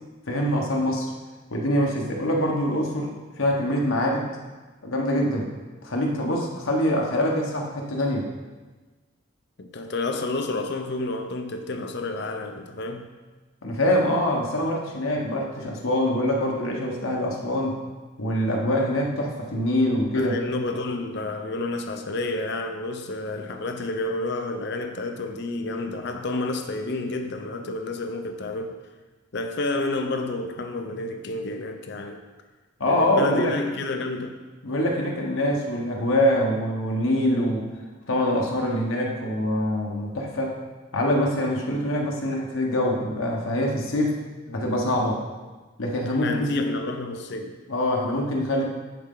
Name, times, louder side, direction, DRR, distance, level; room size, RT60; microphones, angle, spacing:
voice 1, 0.3-1.1 1.5-4.3 4.8-5.5 5.8-8.3 13.6-17.8 18.2-20.4 32.8-33.5 34.6-37.7 38.1-40.6 40.9-44.2 44.5-45.2 45.8-46.7 47.7-48.7, left 1 dB, 85° left, -1 dB, 1.2 m, -24 dB
voice 2, 9.6-13.1 20.1-28.8 29.3-32.2 32.9-34.4 46.1-47.6, left 2 dB, 55° left, 5 dB, 0.6 m, -30 dB
10.5 x 4.3 x 3.8 m, 1.3 s
head